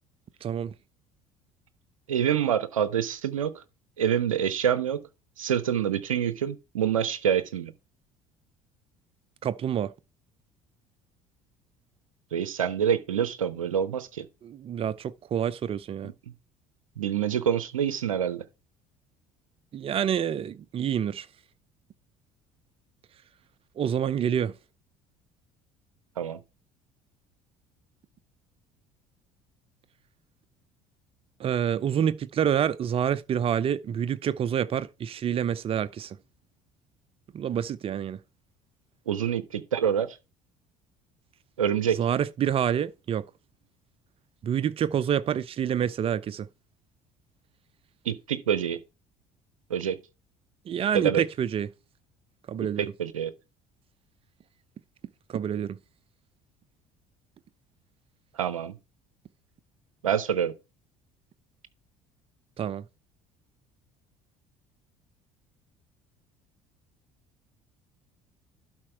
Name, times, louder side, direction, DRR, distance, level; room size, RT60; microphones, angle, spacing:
voice 1, 0.4-0.7 9.4-9.9 14.4-16.1 19.7-21.3 23.8-24.5 31.4-36.2 37.3-38.2 41.9-43.2 44.4-46.5 50.7-51.7 52.5-52.9 55.3-55.8 62.6-62.8, right 9 dB, 35° right, 0.6 m, -27 dB
voice 2, 2.1-3.6 4.0-5.0 5.4-7.7 12.3-14.3 17.0-18.5 26.2-26.4 39.1-40.1 41.6-42.0 48.1-48.8 49.7-50.0 50.9-51.2 52.8-53.3 58.4-58.8 60.0-60.5, right 9 dB, 75° right, 0.7 m, -26 dB
12.0 x 4.4 x 4.7 m
figure-of-eight pair, 55°, 17 cm